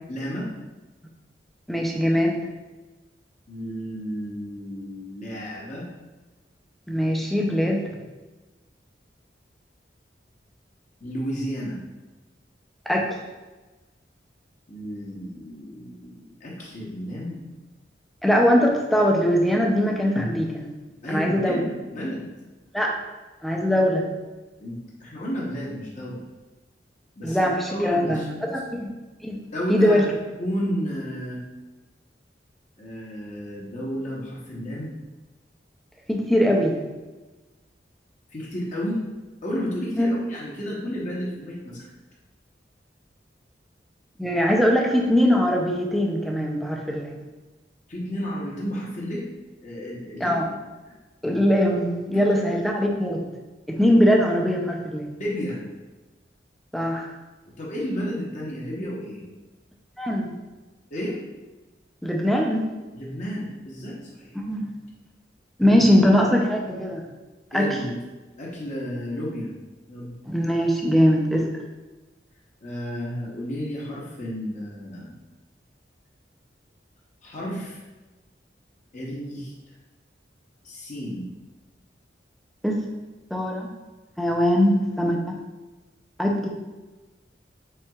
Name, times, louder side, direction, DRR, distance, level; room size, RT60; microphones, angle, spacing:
voice 1, 0.1-0.5 3.5-5.9 11.0-11.8 14.7-17.5 21.0-21.6 21.9-22.3 24.6-26.2 27.2-27.4 27.7-28.5 29.5-30.0 30.4-31.4 32.8-35.0 38.3-39.0 39.4-41.9 47.9-49.3 49.6-50.4 52.1-52.2 55.2-55.6 57.6-59.2 60.9-61.2 62.9-64.4 67.5-68.0 68.4-69.5 69.9-70.1 72.6-75.1 77.2-77.8 78.9-79.5 80.6-81.3, equal, 45° left, -5 dB, 0.8 m, -32 dB
voice 2, 1.7-2.3 6.9-7.9 12.9-13.2 18.2-20.7 21.1-21.6 22.7-22.9 23.4-24.0 27.2-28.9 29.2-29.4 29.7-30.1 36.1-36.8 40.0-40.1 44.2-47.1 50.2-50.4 51.2-53.2 53.7-55.1 56.7-57.1 60.0-60.3 62.0-62.6 64.5-64.7 65.6-67.0 67.5-67.8 70.3-71.5 82.6-82.8 83.3-83.7 84.2-85.4 86.2-86.5, equal, ahead, 0 dB, 0.4 m, -21 dB
4.4 x 3.5 x 2.3 m, 1.2 s
head